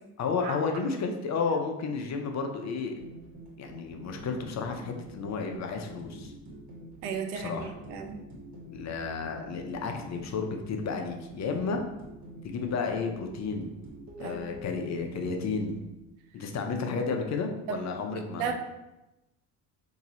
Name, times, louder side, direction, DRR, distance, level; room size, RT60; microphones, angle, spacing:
voice 1, 0.2-3.0 3.6-6.3 7.3-7.7 8.7-11.8 12.4-13.7 14.2-15.8 16.3-18.5, left 4 dB, 35° left, 4 dB, 0.6 m, -32 dB
sound 1, 3.0-15.9, right 1 dB, 50° right, 1.4 m, -46 dB
voice 2, 7.0-8.2 14.2-14.6 17.7-17.8 18.1-18.6, right 6 dB, 75° right, 5 dB, 0.7 m, -35 dB
2.9 x 2.7 x 3.8 m, 0.97 s
hypercardioid pair, 75°, 47 cm